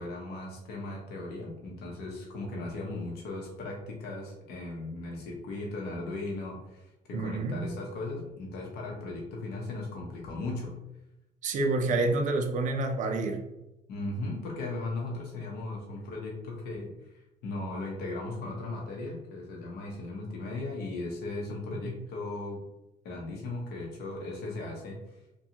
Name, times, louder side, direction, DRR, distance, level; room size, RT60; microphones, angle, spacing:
voice 1, 0.0-10.7 12.0-12.1 13.9-22.6 23.0-25.0, left 2 dB, 75° left, -1 dB, 0.7 m, -37 dB
voice 2, 7.1-7.7 11.4-13.4, right 2 dB, 50° right, 4 dB, 0.4 m, -28 dB
2.6 x 2.3 x 2.8 m, 0.90 s
cardioid pair, 110°, 17 cm